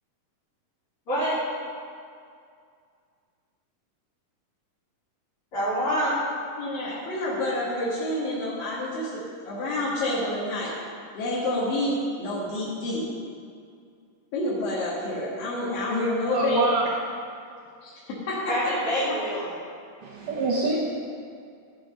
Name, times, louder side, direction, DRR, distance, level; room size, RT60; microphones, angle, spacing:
voice 1, 1.1-1.4 5.5-6.2 18.5-19.5, equal, 40° left, -14 dB, 4.2 m, -26 dB
voice 2, 6.6-10.7 11.1-13.0 14.3-16.6 17.9-18.0 18.3-18.4 19.1-19.2, left 1 dB, 85° left, -7 dB, 3.6 m, -28 dB
voice 3, 16.3-16.9 20.0-20.8, right 3 dB, 75° right, -5 dB, 2.7 m, -25 dB
15.5 x 6.2 x 5.4 m, 2.3 s
omnidirectional pair, 3.9 m